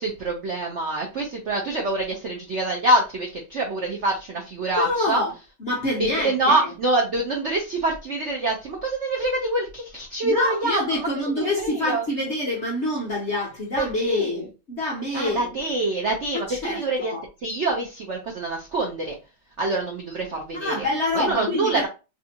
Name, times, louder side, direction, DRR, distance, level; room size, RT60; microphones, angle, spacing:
voice 1, 0.0-5.2 6.0-11.1 11.4-12.1 13.8-14.5 15.1-17.1 17.4-19.2 19.6-20.9 21.1-21.9, right 2 dB, 85° right, 0.6 m, -25 dB
voice 2, 4.8-5.3 5.6-6.7 10.2-15.5 16.5-17.2 20.6-21.9, left 2 dB, 55° left, 0.7 m, -26 dB
3.3 x 2.7 x 2.8 m
omnidirectional pair, 2.3 m